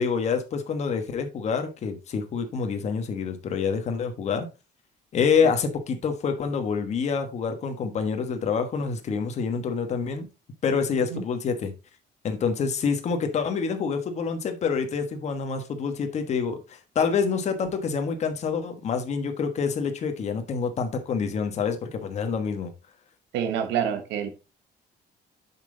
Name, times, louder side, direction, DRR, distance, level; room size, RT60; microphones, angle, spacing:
voice 1, 0.0-4.5 5.1-10.3 10.6-11.7 12.2-22.7, left 5 dB, 40° left, 1.3 m, -27 dB
voice 2, 23.3-24.3, right 8 dB, 85° right, 1.2 m, -27 dB
7.2 x 6.0 x 3.8 m
cardioid pair, 160°, 18 cm